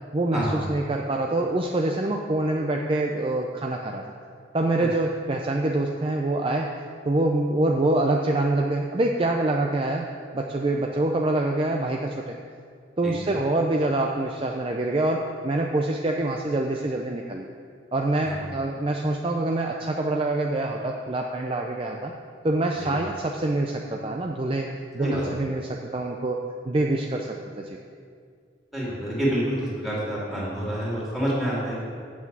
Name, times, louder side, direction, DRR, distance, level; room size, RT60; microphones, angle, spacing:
voice 1, 0.1-4.0 4.5-6.7 7.1-10.1 10.3-12.3 13.0-17.5 17.9-22.1 22.4-24.7 24.9-27.8, right 2 dB, 30° right, 1 dB, 0.5 m, -25 dB
voice 2, 28.7-31.8, right 1 dB, ahead, -7 dB, 2.6 m, -28 dB
8.4 x 6.0 x 7.4 m, 2.2 s
head